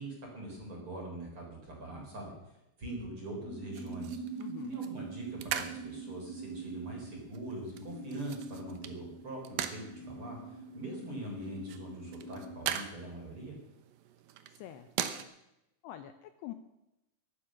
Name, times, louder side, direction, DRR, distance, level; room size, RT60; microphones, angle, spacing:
voice 1, 0.0-2.3 2.8-4.2 4.7-13.5, right 2 dB, 30° right, 0 dB, 4.5 m, -42 dB
sound 1, 3.4-12.6, right 3 dB, ahead, 1.6 m, -44 dB
sound 2, 3.7-15.2, right 10 dB, 75° right, 2.2 m, -42 dB
voice 2, 4.4-4.8 14.5-15.2 15.8-16.5, left 12 dB, 80° left, 9 dB, 2.6 m, -46 dB
15.5 x 11.5 x 6.3 m, 0.89 s
omnidirectional pair, 5.3 m